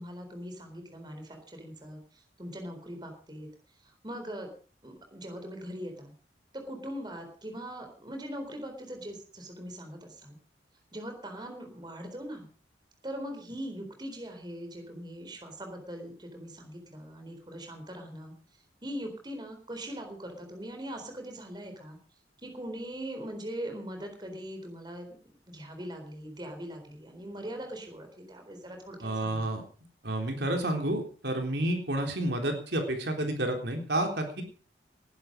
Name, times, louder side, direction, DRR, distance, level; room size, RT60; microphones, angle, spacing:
voice 1, 0.0-3.5 3.8-4.5 4.8-6.1 6.5-10.4 10.9-12.5 13.0-18.3 18.8-22.0 22.4-25.1 25.5-29.5, equal, 25° right, 4 dB, 4.0 m, -41 dB
voice 2, 29.0-29.6 30.0-34.4, right 1 dB, 65° right, 3 dB, 3.7 m, -30 dB
19.5 x 11.0 x 5.2 m, 0.40 s
head